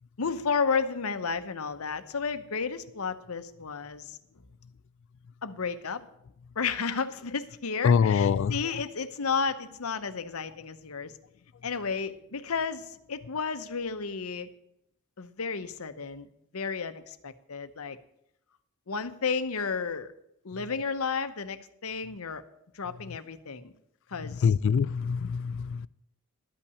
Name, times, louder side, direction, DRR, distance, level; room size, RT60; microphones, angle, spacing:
voice 1, 0.2-4.2 5.4-6.0 6.6-11.2 11.6-14.5 15.2-16.3 16.5-18.0 18.9-20.1 20.4-22.4 22.7-23.7 24.1-24.5, left 5 dB, 80° left, 0.8 m, -32 dB
voice 2, 7.8-8.5 24.4-25.9, left 6 dB, 60° left, 0.3 m, -24 dB
12.0 x 5.7 x 8.2 m
head